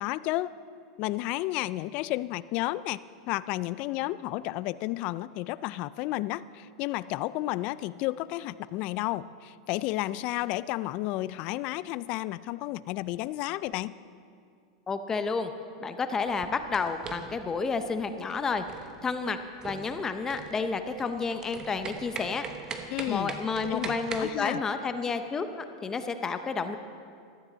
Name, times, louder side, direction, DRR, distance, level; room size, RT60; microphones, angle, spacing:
voice 1, 0.0-0.6 1.0-3.0 3.3-13.9 22.9-23.4 23.7-24.6, left 17 dB, 50° left, 18 dB, 0.4 m, -32 dB
voice 2, 14.9-15.5 15.8-18.7 19.0-22.4 23.1-26.8, left 4 dB, 20° left, 9 dB, 0.7 m, -30 dB
sound 1, 16.2-24.3, right 5 dB, 30° right, 1.1 m, -41 dB
14.5 x 13.0 x 4.0 m, 2.3 s
hypercardioid pair, 115°, 2 cm